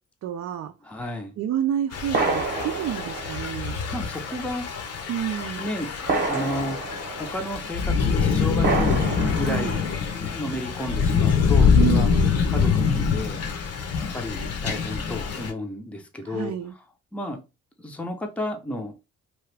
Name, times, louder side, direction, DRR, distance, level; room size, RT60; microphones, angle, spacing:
voice 1, 0.2-0.7 1.4-3.8 5.1-5.7 9.4-9.8 11.7-12.3 16.2-16.7, right 10 dB, 60° right, 0.4 m, -29 dB
voice 2, 0.8-1.3 3.9-4.6 5.6-6.0 6.2-6.8 7.2-9.8 10.1-12.1 12.5-13.4 14.1-16.5 17.1-17.4 17.8-18.9, left 1 dB, 5° left, 0.6 m, -32 dB
sound 1, 1.0-1.1 2.1-3.9 4.4-4.5 6.1-7.7 8.6-10.1, right 3 dB, 35° right, 0.9 m, -29 dB
Thunder / Rain, 1.9-15.5, left 6 dB, 55° left, 0.8 m, -24 dB
2.9 x 2.3 x 3.3 m
cardioid pair, 90°, 30 cm